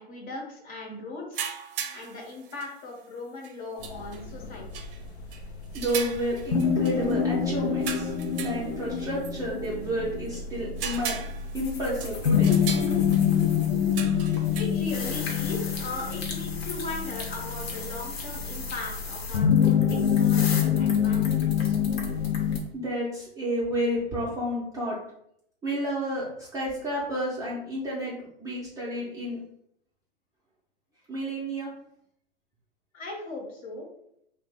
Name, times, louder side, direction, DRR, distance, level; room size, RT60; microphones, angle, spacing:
voice 1, 0.0-1.4 1.9-4.6 14.5-19.8 20.1-21.8 32.9-33.9, left 2 dB, 25° left, -1 dB, 0.8 m, -38 dB
sound 1, 1.3-2.7 3.4-3.5 3.8-4.2 4.7-5.0 5.3-5.4 5.7-7.1 7.8-9.3 9.6-9.7 10.3-10.4 10.8-13.5 13.9-14.6, right 7 dB, 60° right, 0.5 m, -37 dB
sound 2, 3.8-22.6, left 8 dB, 85° left, 0.5 m, -26 dB
voice 2, 5.7-8.1 8.4-11.2 11.5-12.5 22.7-25.0 25.6-29.4 31.1-31.7, equal, 10° right, -6 dB, 0.5 m, -30 dB
sound 3, 11.5-13.9 14.2-22.6, left 4 dB, 70° left, 0.9 m, -39 dB
2.6 x 2.0 x 3.4 m, 0.72 s
hypercardioid pair, 115°, 31 cm